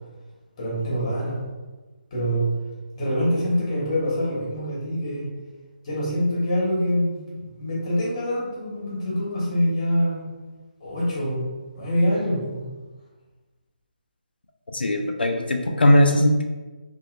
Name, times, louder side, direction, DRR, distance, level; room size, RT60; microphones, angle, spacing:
voice 1, 0.6-1.4 2.1-2.5 2.9-5.2 5.8-10.2 10.8-12.7, equal, 40° left, -6 dB, 1.4 m, -25 dB
voice 2, 14.7-16.4, left 1 dB, 85° left, 4 dB, 0.5 m, -19 dB
2.8 x 2.7 x 2.5 m, 1.3 s
figure-of-eight pair, 155°, 5 cm